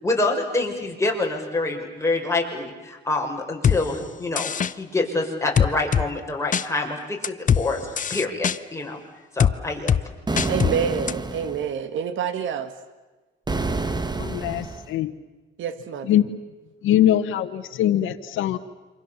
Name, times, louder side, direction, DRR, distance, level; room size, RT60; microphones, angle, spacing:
voice 1, 0.0-9.0 9.3-10.2, left 2 dB, 15° left, 0 dB, 6.3 m, -26 dB
sound 1, 3.6-3.8 4.4-4.7 5.6-6.1 6.5-6.7 7.2-7.6 8.0-8.6 9.4-9.5 9.9-10.0 10.4-10.7 11.1-11.2, left 8 dB, 40° left, 0.8 m, -20 dB
sound 2, 10.3-11.7 13.5-14.9, right 3 dB, 20° right, 1.8 m, -28 dB
voice 2, 10.5-12.7 15.6-16.1, right 7 dB, 75° right, 11 dB, 1.8 m, -27 dB
voice 3, 14.2-15.1 16.0-16.3 16.8-18.6, left 11 dB, 85° left, 7 dB, 1.3 m, -22 dB
27.5 x 25.5 x 7.3 m, 1.2 s
cardioid pair, 90°, 20 cm